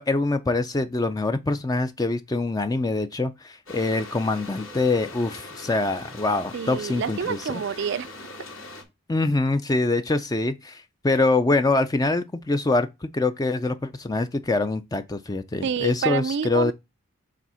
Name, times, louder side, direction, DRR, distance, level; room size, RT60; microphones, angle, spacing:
voice 1, 0.0-7.6 9.1-16.7, left 2 dB, 15° left, 0.4 m, -24 dB
sound 1, 3.7-8.8, left 2 dB, 75° left, 2.5 m, -41 dB
voice 2, 6.5-8.1 15.6-16.7, right 6 dB, 55° right, 0.3 m, -28 dB
7.5 x 3.4 x 5.5 m
head